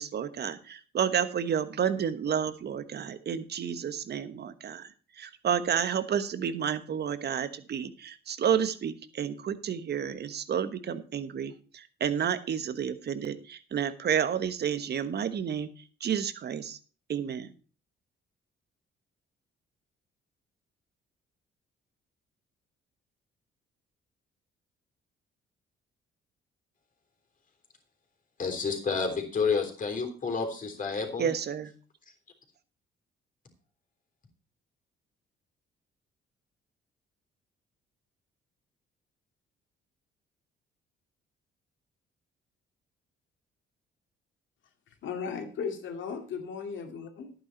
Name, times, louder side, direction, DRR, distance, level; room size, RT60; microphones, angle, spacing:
voice 1, 0.0-4.9 5.2-15.7 16.0-16.8 17.1-17.5 31.2-31.7, right 8 dB, 55° right, 12 dB, 1.3 m, -30 dB
voice 2, 28.4-31.3, left 5 dB, 40° left, 4 dB, 3.5 m, -30 dB
voice 3, 45.0-47.3, left 6 dB, 75° left, 5 dB, 2.4 m, -36 dB
11.0 x 9.3 x 4.5 m, 0.38 s
cardioid pair, 90°, 20 cm